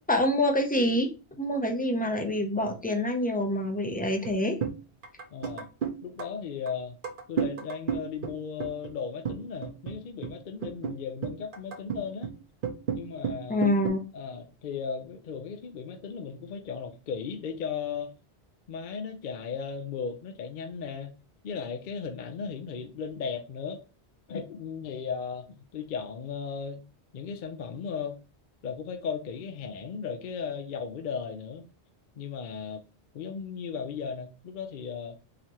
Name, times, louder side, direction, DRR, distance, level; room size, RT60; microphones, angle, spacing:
voice 1, 0.1-1.1 1.4-4.6 13.5-14.0, left 1 dB, 10° left, 0.5 m, -26 dB
sound 1, 4.2-4.3 4.6-4.8 5.0-6.3 6.7-6.8 7.0-8.9 9.3-10.0 10.2-10.3 10.6-11.0 11.2-12.3 12.6-13.9, right 7 dB, 55° right, 0.9 m, -32 dB
voice 2, 5.3-5.7 6.0-7.0 7.3-12.3 12.9-13.6 14.1-18.1 18.7-21.1 21.4-23.8 24.3-26.8 27.1-28.2 28.6-31.7 32.2-32.8 33.1-35.2, left 6 dB, 55° left, 0.6 m, -36 dB
4.0 x 2.7 x 3.0 m
omnidirectional pair, 1.1 m